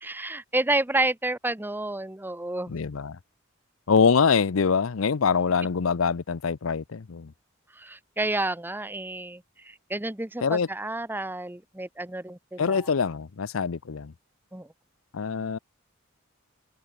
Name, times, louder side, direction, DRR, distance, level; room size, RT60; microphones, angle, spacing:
voice 1, 0.0-2.8 7.8-12.9 14.5-14.7, right 2 dB, 10° right, 1.0 m, -30 dB
voice 2, 2.7-3.2 3.9-7.3 10.4-10.7 12.6-14.1 15.1-15.6, left 5 dB, 85° left, 0.6 m, -24 dB
head